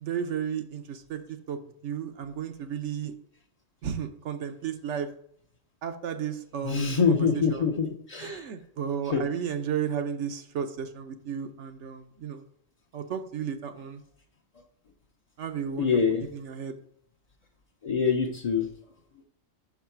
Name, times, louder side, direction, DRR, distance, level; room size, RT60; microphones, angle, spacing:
voice 1, 0.0-1.2 1.5-3.1 3.8-5.1 5.8-7.7 8.2-12.4 12.9-14.0 15.4-16.8, right 8 dB, 70° right, 8 dB, 1.0 m, -33 dB
voice 2, 6.6-8.4 9.1-9.2 15.8-16.2 17.8-18.7, left 5 dB, 40° left, -1 dB, 0.6 m, -25 dB
5.6 x 4.7 x 5.7 m, 0.65 s
omnidirectional pair, 1.3 m